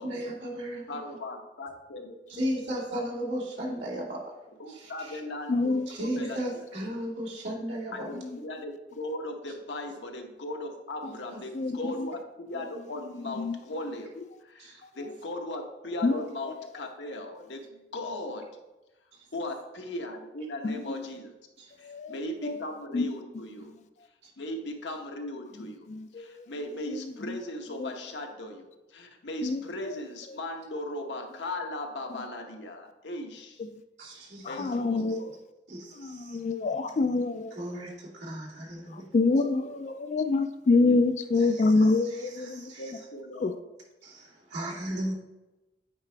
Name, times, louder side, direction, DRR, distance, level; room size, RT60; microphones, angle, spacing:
voice 1, 0.0-1.0 2.3-4.2 4.7-5.2 5.9-8.1 11.0-11.4 11.8-11.9 14.6-14.8 21.6-21.7 24.2-24.3 34.0-34.7 35.0-35.2 35.7-36.4 37.5-39.0 41.5-42.9 44.0-45.1, equal, 75° right, -6 dB, 2.5 m, -36 dB
voice 2, 0.9-2.1 4.6-6.4 7.9-8.2 8.4-14.1 14.4-18.5 19.3-21.3 21.8-23.7 24.4-25.9 26.2-33.6 34.5-35.3 39.3-39.5 39.8-39.9 42.8-43.5, left 1 dB, 75° left, 3 dB, 1.0 m, -38 dB
voice 3, 5.5-5.9 8.1-8.3 11.5-12.1 13.1-13.5 16.0-16.2 20.6-20.8 21.8-22.2 22.4-22.6 22.9-23.1 25.9-26.5 26.9-27.3 27.8-27.9 29.4-30.0 34.4-35.2 36.0-37.5 38.9-42.7 43.4-43.5, left 3 dB, 40° left, 11 dB, 0.3 m, -26 dB
8.8 x 4.9 x 3.4 m, 1.0 s
head